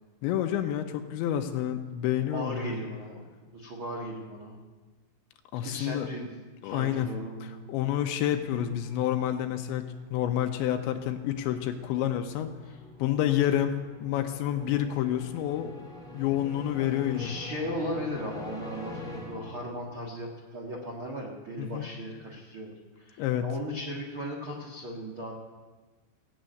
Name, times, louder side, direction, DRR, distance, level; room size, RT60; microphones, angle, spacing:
voice 1, 0.2-2.8 5.5-6.1 6.6-7.1 7.4-12.5 13.0-15.9 16.1-17.3 21.6-21.9 23.2-23.5, left 11 dB, 80° left, 6 dB, 2.9 m, -29 dB
voice 2, 2.3-3.2 3.5-4.6 5.6-6.3 6.6-7.6 12.6-12.7 16.8-25.3, equal, 70° right, -3 dB, 1.2 m, -37 dB
sound 1, 7.4-20.1, left 2 dB, 5° left, 0.3 m, -45 dB
15.5 x 7.4 x 9.2 m, 1.3 s
omnidirectional pair, 5.6 m